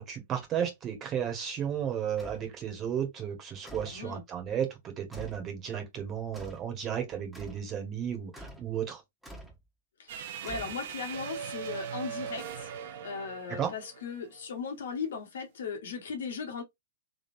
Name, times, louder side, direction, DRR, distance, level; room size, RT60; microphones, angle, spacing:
voice 1, 0.0-9.0 13.5-13.7, right 8 dB, 30° right, 1.5 m, -34 dB
sound 1, 2.2-2.5 3.6-4.0 5.1-5.5 6.3-6.7 7.3-7.7 8.3-8.7 9.2-9.6 10.4-11.1, equal, 5° right, 1.4 m, -46 dB
voice 2, 3.9-4.2 10.0-16.6, left 5 dB, 70° left, 1.4 m, -38 dB
sound 2, 10.1-14.5, right 8 dB, 60° right, 0.8 m, -40 dB
3.7 x 3.5 x 2.7 m
hypercardioid pair, 110°, 0 cm